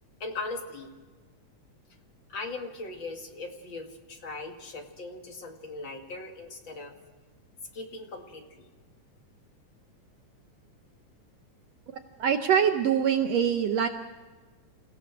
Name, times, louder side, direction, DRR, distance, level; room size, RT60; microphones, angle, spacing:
voice 1, 0.2-0.9 2.3-6.9 7.7-8.7, left 3 dB, 40° left, 3 dB, 2.5 m, -39 dB
voice 2, 12.2-13.9, right 8 dB, 70° right, 6 dB, 1.8 m, -24 dB
28.5 x 17.0 x 6.1 m, 1.3 s
omnidirectional pair, 3.5 m